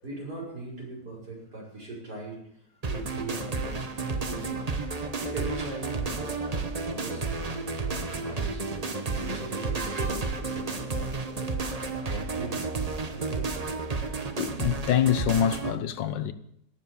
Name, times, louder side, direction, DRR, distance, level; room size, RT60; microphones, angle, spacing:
voice 1, 0.0-2.5 2.9-4.7 5.2-11.5 12.1-12.8 13.1-13.7, right 2 dB, 60° right, 6.2 m, -40 dB
sound 1, 2.8-15.8, right 4 dB, 30° right, 0.8 m, -32 dB
voice 2, 14.4-16.3, left 10 dB, 80° left, 1.6 m, -25 dB
18.0 x 7.2 x 7.1 m
omnidirectional pair, 1.9 m